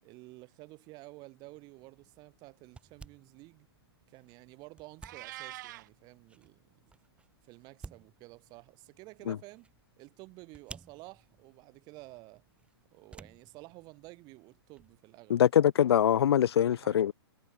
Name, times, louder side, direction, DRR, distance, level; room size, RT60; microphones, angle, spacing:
voice 1, 0.0-3.7 4.1-6.8 7.4-9.7 10.0-12.4 12.9-15.4 16.5-17.0, right 23 dB, 30° right, 7.7 m, -52 dB
sound 1, 1.4-15.0, right 4 dB, 10° right, 5.8 m, -56 dB
Meow, 5.0-5.9, right 16 dB, 45° right, 1.3 m, -44 dB
voice 2, 15.3-17.1, left 10 dB, 75° left, 0.4 m, -23 dB
hypercardioid pair, 140°, 13 cm